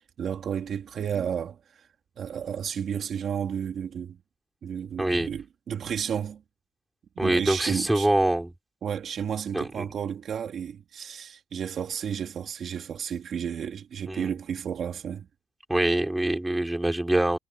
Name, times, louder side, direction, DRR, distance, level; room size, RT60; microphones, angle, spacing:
voice 1, 0.2-1.9 2.2-4.2 4.6-6.4 7.2-8.1 8.8-15.3, right 8 dB, 60° right, 2.5 m, -32 dB
voice 2, 5.0-5.3 7.2-8.5 9.5-9.9 14.1-14.3 15.7-17.4, right 1 dB, 10° right, 4.6 m, -24 dB
cardioid pair, 125°, 0 cm